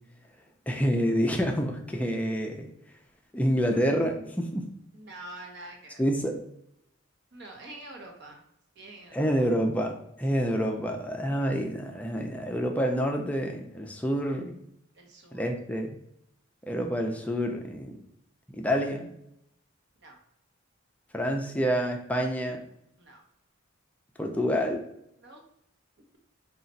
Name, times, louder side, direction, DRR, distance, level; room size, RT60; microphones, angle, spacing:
voice 1, 0.7-2.7 3.3-4.7 6.0-6.4 9.1-14.6 15.3-15.9 16.7-17.9 18.5-19.1 21.1-22.6 24.2-24.8, equal, 5° left, 2 dB, 0.4 m, -28 dB
voice 2, 4.9-6.0 7.3-8.4 8.7-9.5 10.3-10.4 14.9-15.5 20.0-20.2 23.0-23.2 25.1-25.4, right 2 dB, 60° right, 2 dB, 0.9 m, -46 dB
4.2 x 2.4 x 3.9 m, 0.76 s
head